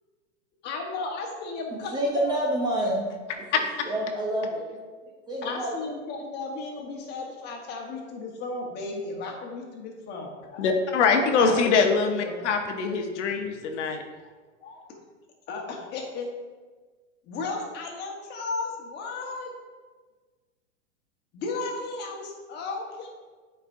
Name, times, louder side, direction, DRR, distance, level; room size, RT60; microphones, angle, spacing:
voice 1, 0.6-2.4 5.0-5.1 5.4-10.4 11.4-12.4 12.7-13.2 15.5-16.3 17.3-19.5 21.3-23.1, left 3 dB, 25° left, 1 dB, 1.1 m, -34 dB
voice 2, 1.9-3.0 3.5-4.6 5.3-5.8, right 1 dB, 10° right, -3 dB, 0.5 m, -28 dB
voice 3, 10.6-14.0, left 5 dB, 65° left, 4 dB, 0.9 m, -23 dB
9.1 x 4.4 x 2.6 m, 1.4 s
hypercardioid pair, 140°, 37 cm